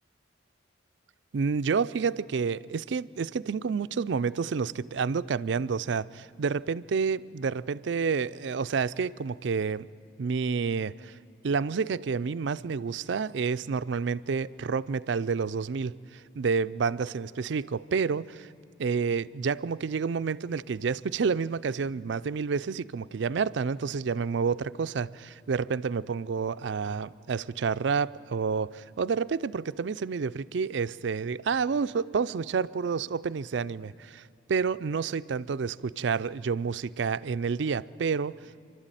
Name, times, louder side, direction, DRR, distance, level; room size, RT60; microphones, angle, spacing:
voice 1, 1.3-9.9 10.2-11.2 11.4-18.5 18.8-38.4, right 5 dB, 65° right, 0.4 m, -29 dB
27.5 x 12.5 x 9.0 m
head